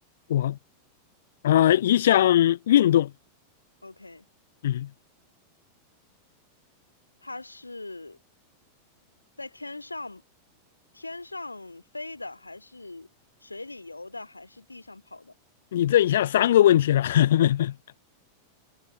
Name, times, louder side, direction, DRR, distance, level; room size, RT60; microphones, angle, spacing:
voice 1, 1.4-3.1 4.6-4.9 15.7-17.7, left 12 dB, 60° left, 0.5 m, -20 dB
voice 2, 3.8-4.3 7.2-8.2 9.4-10.2 10.9-13.1 13.4-15.3, left 2 dB, 80° left, 2.1 m, -40 dB
figure-of-eight pair, 90°, 0 cm